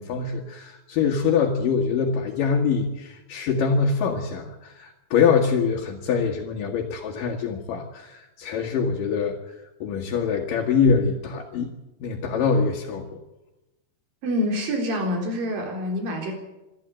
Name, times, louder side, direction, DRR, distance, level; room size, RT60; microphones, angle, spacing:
voice 1, 0.0-11.7 12.0-13.2, left 5 dB, 65° left, 0 dB, 3.2 m, -24 dB
voice 2, 14.2-16.3, left 1 dB, 65° right, 1 dB, 5.7 m, -26 dB
26.0 x 12.5 x 9.0 m, 1.0 s
omnidirectional pair, 4.3 m